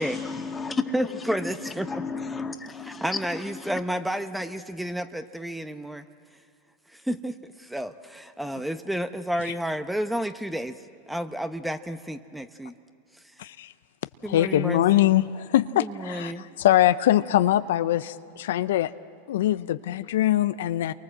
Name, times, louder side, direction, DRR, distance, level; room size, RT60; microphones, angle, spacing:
voice 1, 0.0-0.9 1.9-3.0 3.6-3.7, left 4 dB, 15° left, 5 dB, 2.1 m, -32 dB
voice 2, 0.9-2.0 2.8-6.1 6.9-12.7 13.1-13.4 14.2-15.1 15.7-16.5, equal, 5° right, 9 dB, 1.0 m, -31 dB
voice 3, 13.4-13.7 14.3-18.9 19.3-20.9, left 13 dB, 75° left, 13 dB, 0.6 m, -23 dB
29.5 x 23.5 x 7.7 m, 2.2 s
hypercardioid pair, 95°, 0 cm